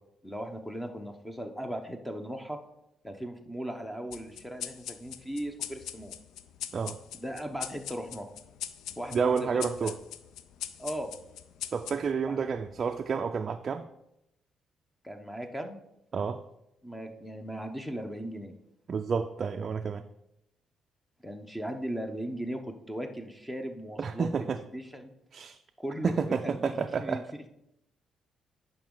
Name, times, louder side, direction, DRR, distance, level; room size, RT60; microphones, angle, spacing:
voice 1, 0.2-2.6 3.0-6.1 7.2-8.3 9.0-9.9 10.8-11.1 12.2-12.4 15.0-15.8 16.8-18.5 21.2-25.1 25.8-27.4, equal, 5° left, 5 dB, 0.9 m, -38 dB
sound 1, 4.1-13.0, left 10 dB, 85° left, 0.4 m, -42 dB
voice 2, 9.1-9.9 11.7-13.9 16.1-16.4 18.9-20.0 24.0-24.6 25.3-25.6 26.0-27.2, right 6 dB, 45° right, 6 dB, 0.4 m, -30 dB
10.5 x 5.2 x 3.8 m, 0.83 s
cardioid pair, 90°, 0 cm